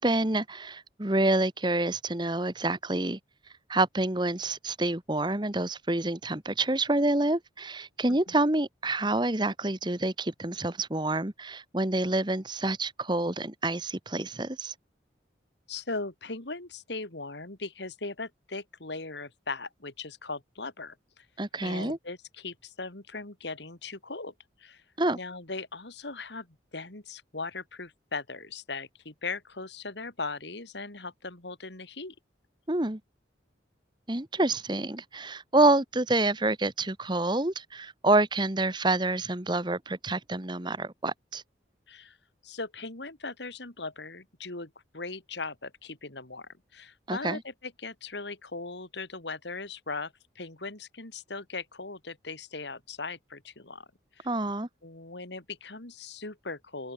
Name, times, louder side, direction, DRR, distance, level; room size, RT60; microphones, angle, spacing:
voice 1, 0.0-3.2 3.7-14.7 21.4-22.0 25.0-25.2 32.7-33.0 34.1-41.4 47.1-47.4 54.2-54.7, right 2 dB, 25° right, 1.3 m, -27 dB
voice 2, 15.7-21.3 21.6-24.3 24.6-24.8 25.1-32.1 41.9-42.2 42.4-53.9 54.2-54.3 54.8-56.9, left 3 dB, 70° left, 2.8 m, -39 dB
open air
head